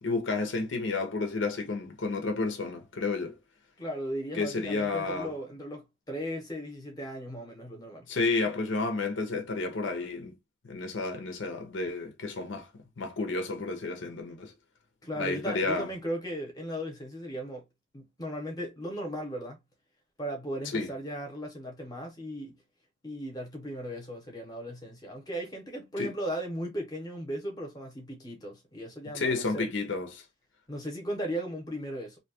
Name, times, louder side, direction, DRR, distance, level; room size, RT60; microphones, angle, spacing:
voice 1, 0.0-3.4 4.3-5.3 8.1-10.3 10.6-12.7 13.0-14.5 15.2-15.9 20.7-20.9 26.0-26.1 29.1-30.2, left 3 dB, 75° left, 0.7 m, -31 dB
voice 2, 3.8-8.1 15.0-17.6 17.9-19.6 20.2-22.6 23.0-29.7 30.7-32.2, equal, 20° left, 0.8 m, -37 dB
2.7 x 2.2 x 2.8 m
head